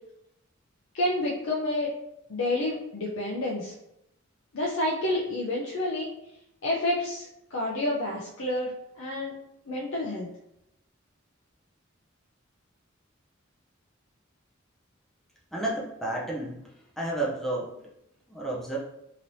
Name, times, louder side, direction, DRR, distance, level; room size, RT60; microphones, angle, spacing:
voice 1, 0.9-1.9 2.3-3.7 4.5-6.1 6.6-9.3 9.7-10.3, left 1 dB, 75° left, -3 dB, 0.5 m, -29 dB
voice 2, 15.5-16.6 17.0-17.7 18.3-18.8, right 2 dB, ahead, -4 dB, 0.5 m, -31 dB
3.1 x 2.9 x 2.6 m, 0.82 s
head